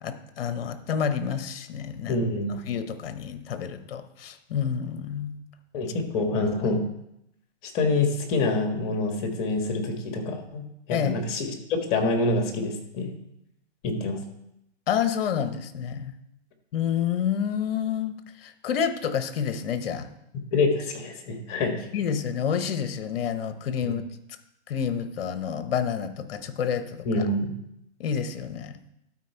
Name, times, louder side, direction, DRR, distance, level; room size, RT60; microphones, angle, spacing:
voice 1, 0.0-2.2 2.7-5.3 10.9-11.1 14.9-16.1 16.7-20.1 21.9-24.0 24.7-27.2 28.0-28.8, left 8 dB, 55° left, 11 dB, 1.0 m, -29 dB
voice 2, 2.1-2.6 5.7-6.8 7.6-13.1 13.8-14.2 20.5-21.9 23.8-23.9 27.0-27.5, left 3 dB, 30° left, 4 dB, 1.6 m, -26 dB
12.5 x 4.5 x 4.4 m, 0.81 s
hypercardioid pair, 140°, 35 cm